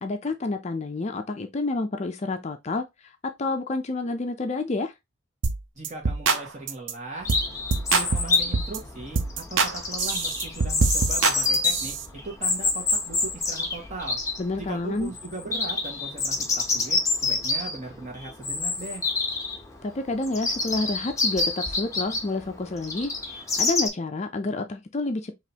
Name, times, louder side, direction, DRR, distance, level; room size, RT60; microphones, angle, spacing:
voice 1, 0.0-2.8 3.4-4.9 14.4-15.1 19.8-25.3, left 2 dB, 35° left, 0.4 m, -29 dB
sound 1, 5.4-5.6 5.8-6.4 6.7-6.9 7.3-7.5 7.7-8.8 9.2-9.7 10.0-12.0, right 4 dB, 70° right, 0.7 m, -24 dB
voice 2, 5.7-7.3 7.9-14.2 14.6-19.0, right 2 dB, 35° right, 1.6 m, -38 dB
Chirp tweet, 7.2-23.9, left 3 dB, 15° left, 0.8 m, -28 dB
5.0 x 3.0 x 2.8 m
head